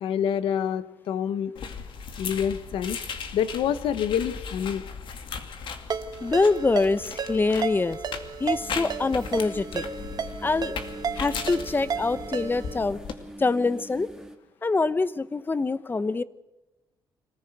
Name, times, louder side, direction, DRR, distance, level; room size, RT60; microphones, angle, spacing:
voice 1, 0.0-1.5 2.2-3.0 3.3-4.8, left 8 dB, 85° left, 13 dB, 1.1 m, -27 dB
sound 1, 1.6-13.1, left 6 dB, 70° left, 2.4 m, -38 dB
Ringtone, 5.9-12.8, right 6 dB, 50° right, 1.4 m, -34 dB
voice 2, 6.2-8.0 8.4-9.8 10.4-10.8 11.2-13.0 13.4-14.1 14.6-16.2, left 3 dB, 25° left, 15 dB, 0.9 m, -25 dB
sound 2, 8.6-14.4, right 1 dB, 5° right, 2.1 m, -43 dB
25.5 x 15.5 x 8.0 m, 1.0 s
cardioid pair, 100°, 9 cm